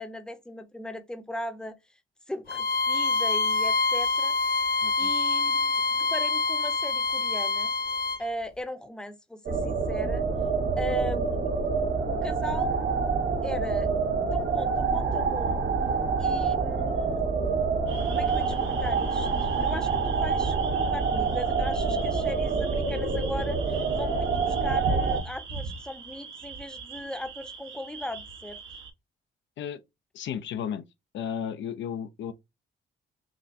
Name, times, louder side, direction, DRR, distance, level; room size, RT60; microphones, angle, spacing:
voice 1, 0.0-1.8 2.3-4.3 5.0-7.7 8.2-10.3 10.8-11.5 12.1-12.8 13.4-13.9 14.3-15.7 16.2-17.2 18.1-28.6, left 1 dB, 5° left, 0.7 m, -38 dB
Bowed string instrument, 2.5-8.2, left 3 dB, 50° left, 1.0 m, -26 dB
sound 1, 9.5-25.2, right 4 dB, 60° right, 1.2 m, -27 dB
sound 2, 17.9-28.9, right 4 dB, 80° right, 1.2 m, -40 dB
voice 2, 30.1-30.8 31.1-32.3, left 8 dB, 70° left, 0.5 m, -34 dB
5.8 x 2.2 x 2.5 m
cardioid pair, 90°, 20 cm